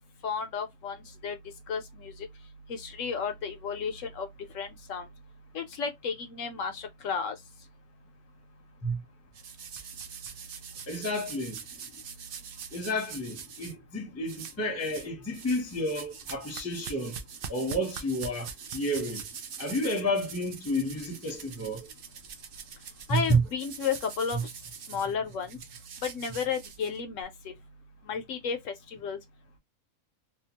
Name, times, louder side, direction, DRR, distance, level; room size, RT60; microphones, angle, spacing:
voice 1, 0.2-1.0 1.2-1.4 1.7-2.3 2.7-4.3 4.5-5.1 5.5-7.4 23.1-24.5 24.9-25.6 26.0-27.5 28.1-29.2, left 6 dB, 70° left, 0.9 m, -33 dB
sound 1, 9.3-13.7 14.3-15.1 15.3-27.2, right 7 dB, 85° right, 0.4 m, -43 dB
voice 2, 10.9-11.5 12.7-17.2 17.5-19.2 19.6-21.9 23.1-23.4 24.3-24.4, equal, 15° left, 0.7 m, -30 dB
2.8 x 2.3 x 2.8 m
omnidirectional pair, 1.5 m